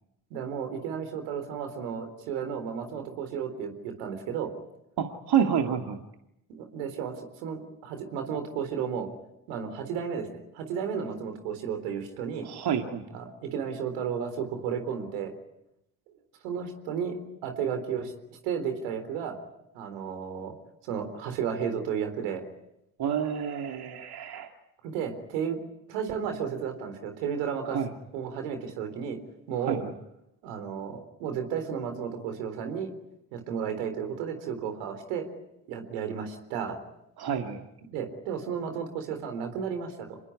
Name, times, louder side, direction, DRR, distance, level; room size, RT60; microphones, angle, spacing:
voice 1, 0.3-4.5 6.5-7.1 7.4-9.1 9.5-12.5 13.1-15.3 16.4-17.2 17.4-18.1 18.4-19.4 19.7-20.6 20.9-22.4 24.8-25.6 25.9-27.8 28.1-29.2 29.5-29.8 30.4-32.9 33.3-35.3 35.7-36.8 37.9-40.2, right 7 dB, 75° right, 7 dB, 4.0 m, -33 dB
voice 2, 5.0-6.0 12.4-13.0 23.0-24.5 27.7-27.9 29.6-29.9 37.2-37.6, right 8 dB, 50° right, 4 dB, 2.3 m, -28 dB
26.5 x 21.0 x 9.8 m, 0.85 s
hypercardioid pair, 55°, 48 cm